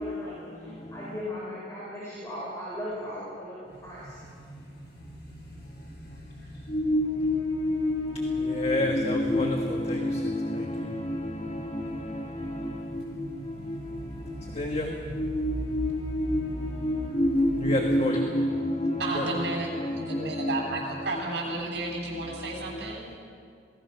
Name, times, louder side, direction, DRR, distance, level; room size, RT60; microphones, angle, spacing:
voice 1, 0.0-4.2, left 1 dB, 15° left, 5.5 m, -38 dB
sound 1, 3.6-17.9, right 1 dB, 70° left, 6.2 m, -45 dB
voice 2, 6.7-13.3 13.7-13.8 14.6-20.6 22.1-22.2, left 1 dB, 35° left, 1.6 m, -28 dB
voice 3, 19.0-23.0, right 2 dB, 65° right, 7.4 m, -32 dB
27.0 x 19.5 x 5.8 m
head